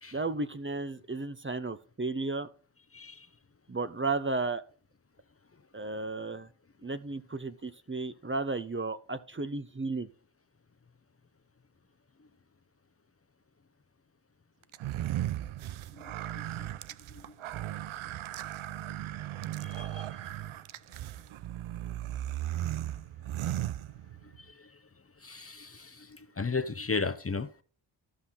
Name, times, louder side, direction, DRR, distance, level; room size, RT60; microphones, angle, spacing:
voice 1, 0.1-2.5 3.7-4.6 5.7-6.5 6.8-10.1, right 3 dB, 25° right, 0.9 m, -33 dB
voice 2, 2.9-3.3 15.9-16.7 17.1-17.2 19.6-20.2 24.4-24.7 25.2-27.5, left 4 dB, 30° left, 0.9 m, -36 dB
sound 1, 14.7-24.4, right 13 dB, 75° right, 0.6 m, -36 dB
14.0 x 5.6 x 4.0 m
cardioid pair, 45°, 49 cm